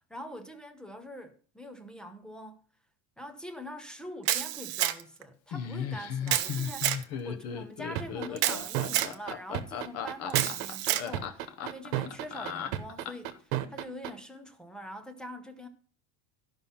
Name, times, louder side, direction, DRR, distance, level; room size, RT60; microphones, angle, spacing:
voice 1, 0.1-2.6 3.2-15.7, equal, ahead, 0.5 m, -44 dB
Camera, 4.3-5.2 6.3-7.0 8.4-9.1 10.3-11.1, right 13 dB, 35° right, 0.7 m, -29 dB
Laughter, 5.5-13.4, left 7 dB, 35° left, 0.8 m, -36 dB
sound 1, 8.0-14.1, right 13 dB, 65° right, 1.1 m, -32 dB
12.5 x 5.7 x 5.5 m
cardioid pair, 170°, 46 cm